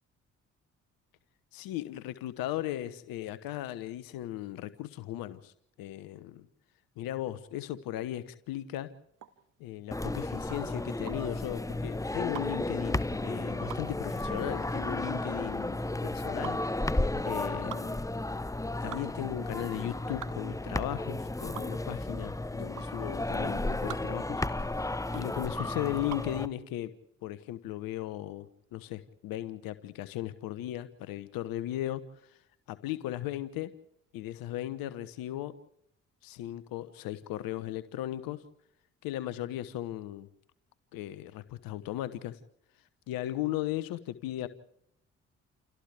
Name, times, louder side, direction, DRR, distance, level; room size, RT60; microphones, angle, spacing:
voice 1, 1.5-5.5 5.8-6.5 7.0-8.9 9.6-16.6 17.2-18.0 18.8-24.4 25.1-26.9 27.2-32.4 32.7-33.7 34.1-35.6 36.2-38.4 39.0-40.3 40.9-42.4 43.1-44.5, left 13 dB, 65° left, 14 dB, 1.1 m, -37 dB
sound 1, 9.1-26.4, right 10 dB, 55° right, 1.9 m, -47 dB
sound 2, 9.9-26.5, left 2 dB, 10° left, 1.0 m, -33 dB
29.5 x 29.0 x 3.5 m, 0.74 s
figure-of-eight pair, 45°, 37 cm